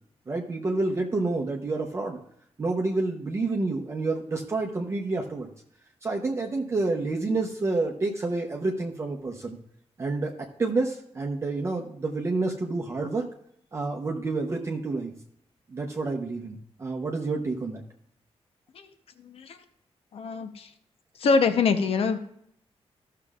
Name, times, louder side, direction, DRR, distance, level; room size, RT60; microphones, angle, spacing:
voice 1, 0.3-2.2 2.6-5.5 6.0-9.6 10.0-13.3 13.7-15.1 15.7-17.8, right 3 dB, 25° right, 1 dB, 0.8 m, -29 dB
voice 2, 19.2-19.6 20.1-20.7 21.2-22.2, left 5 dB, 65° left, 8 dB, 0.8 m, -24 dB
15.0 x 6.6 x 2.4 m, 0.71 s
wide cardioid pair, 175°, 11 cm